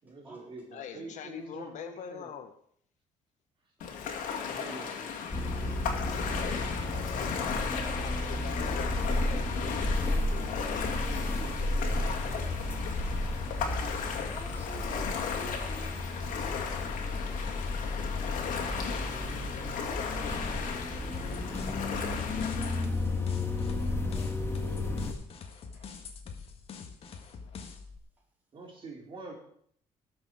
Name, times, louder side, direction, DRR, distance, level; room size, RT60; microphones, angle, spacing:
voice 1, 0.0-2.3 4.3-5.0 11.4-11.5 28.5-29.3, right 3 dB, 40° right, -1 dB, 4.4 m, -45 dB
voice 2, 0.7-2.5 8.0-11.0 11.6-11.9, left 8 dB, 65° left, 9 dB, 1.2 m, -44 dB
Ocean, 3.8-22.8, left 6 dB, 80° left, 2.2 m, -36 dB
voice 3, 4.5-5.7 14.2-16.0 21.2-21.5 24.1-24.3 25.7-26.0, right 2 dB, 15° right, -3 dB, 4.3 m, -51 dB
sound 1, 5.3-25.1, left 2 dB, 20° left, 1.8 m, -33 dB
sound 2, 21.1-28.0, left 5 dB, 45° left, 1.6 m, -45 dB
18.5 x 6.9 x 5.0 m, 0.64 s
cardioid pair, 140°, 13 cm